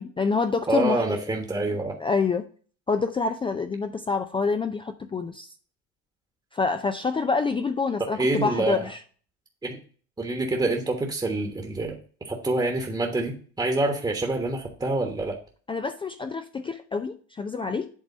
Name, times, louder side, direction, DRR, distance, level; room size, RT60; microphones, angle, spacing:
voice 1, 0.0-1.2 2.0-2.4 2.9-5.5 6.5-9.0 15.7-17.9, left 4 dB, 15° left, 8 dB, 0.4 m, -27 dB
voice 2, 0.7-2.0 8.2-8.9 9.6-9.8 10.2-15.4, right 2 dB, 10° right, 2 dB, 1.3 m, -26 dB
8.3 x 3.3 x 5.3 m, 0.42 s
hypercardioid pair, 80°, 37 cm